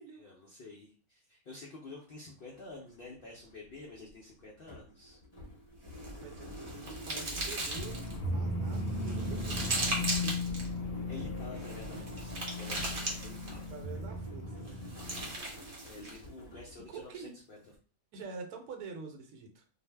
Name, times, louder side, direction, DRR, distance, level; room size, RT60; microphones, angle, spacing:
voice 1, 0.2-5.2 11.1-13.7 15.5-17.6, left 3 dB, 85° left, -2 dB, 0.5 m, -49 dB
sound 1, 2.0-2.1 2.4-17.2, equal, 20° left, 0.9 m, -48 dB
sound 2, 5.9-8.2 8.7-10.7 11.5-13.7 14.7-16.2, right 2 dB, 45° right, 0.8 m, -38 dB
voice 2, 6.2-10.7 11.7-12.1 13.5-15.3 16.9-17.3 18.1-19.6, right 4 dB, 80° right, 3 dB, 1.1 m, -47 dB
sound 3, 7.7-15.4, left 2 dB, 50° left, 0.7 m, -37 dB
2.5 x 2.0 x 3.2 m, 0.39 s
omnidirectional pair, 1.6 m